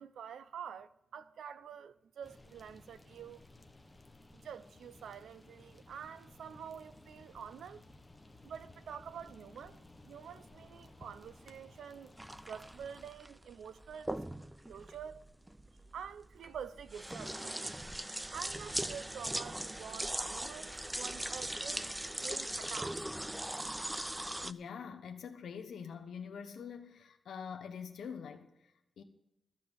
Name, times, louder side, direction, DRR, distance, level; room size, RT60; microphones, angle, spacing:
voice 1, 0.0-3.4 4.3-7.8 8.4-12.1 12.5-14.2 14.7-15.2 15.9-17.6 18.3-21.9 22.2-23.0, right 7 dB, 85° right, 0.6 m, -47 dB
sound 1, 2.2-13.1, left 2 dB, 15° left, 1.1 m, -57 dB
sound 2, 12.2-24.5, right 1 dB, 10° right, 0.4 m, -40 dB
voice 2, 24.4-29.0, left 6 dB, 80° left, 1.0 m, -45 dB
14.5 x 5.9 x 8.9 m
cardioid pair, 105°, 0 cm